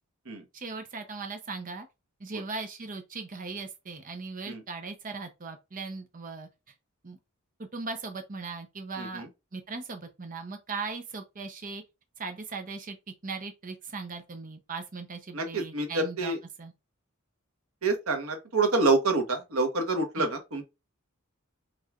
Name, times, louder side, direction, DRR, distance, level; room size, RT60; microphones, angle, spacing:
voice 1, 0.5-1.9 2.2-6.5 7.0-7.2 7.7-9.3 9.5-11.8 12.2-13.0 13.2-16.3 16.6-16.7 20.2-20.3, right 4 dB, 40° right, 0.7 m, -38 dB
voice 2, 9.0-9.3 15.3-16.4 17.8-20.6, right 3 dB, 85° right, 1.2 m, -27 dB
6.4 x 3.1 x 2.4 m
head